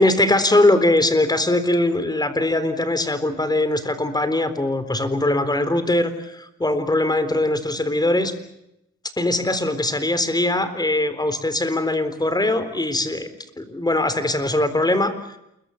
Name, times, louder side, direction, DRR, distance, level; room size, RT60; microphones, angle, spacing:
voice 1, 0.0-8.3 9.2-13.3 13.6-15.1, left 1 dB, 15° left, 12 dB, 3.9 m, -21 dB
28.0 x 23.0 x 7.1 m, 0.84 s
cardioid pair, 90°, 30 cm